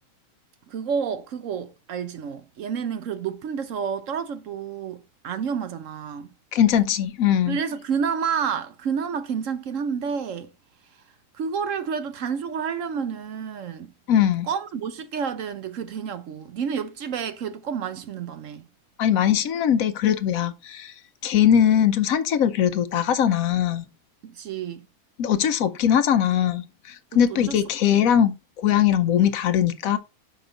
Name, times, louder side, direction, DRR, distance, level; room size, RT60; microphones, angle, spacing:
voice 1, 0.7-6.3 7.5-10.5 11.3-13.9 14.5-18.7 24.2-24.9 27.1-27.6, right 6 dB, 65° right, 0.9 m, -29 dB
voice 2, 6.5-7.6 14.1-14.5 19.0-20.9 21.2-23.8 25.2-30.0, left 9 dB, 70° left, 1.0 m, -21 dB
5.7 x 5.1 x 3.8 m
omnidirectional pair, 1.6 m